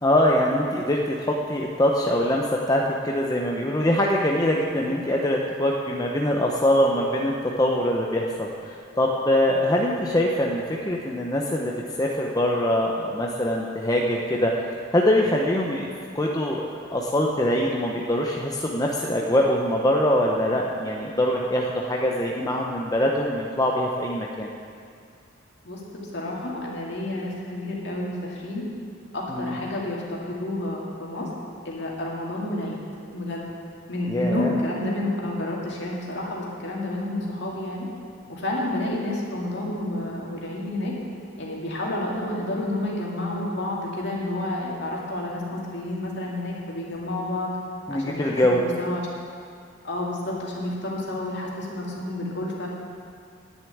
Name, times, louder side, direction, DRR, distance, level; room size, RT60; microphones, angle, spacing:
voice 1, 0.0-11.7 12.0-14.5 14.9-15.9 16.1-24.5 29.3-29.6 34.1-34.5 47.9-48.6, left 1 dB, 20° left, -1 dB, 0.7 m, -23 dB
voice 2, 25.6-28.7 29.1-31.3 31.6-32.8 33.1-33.5 33.9-37.9 38.3-40.9 41.4-47.5 47.9-49.0 49.8-52.7, left 1 dB, 60° left, -3 dB, 2.4 m, -30 dB
10.5 x 6.9 x 9.2 m, 2.2 s
head